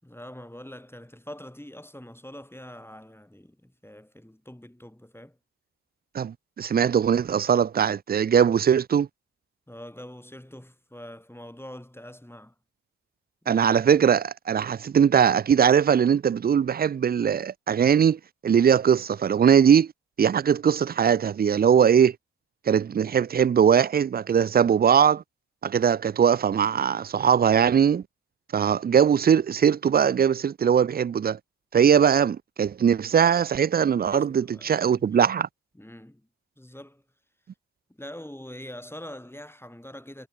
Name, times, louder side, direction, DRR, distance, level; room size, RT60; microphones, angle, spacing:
voice 1, 0.0-5.4 9.7-12.5 13.4-13.6 34.1-35.3 35.7-36.3 36.6-37.0 37.9-40.3, left 1 dB, 10° left, 5.2 m, -44 dB
voice 2, 6.1-9.1 13.5-19.9 20.2-22.2 22.7-25.2 25.6-28.0 28.5-31.4 31.7-35.5, right 8 dB, 30° right, 0.4 m, -20 dB
supercardioid pair, 40°, 31 cm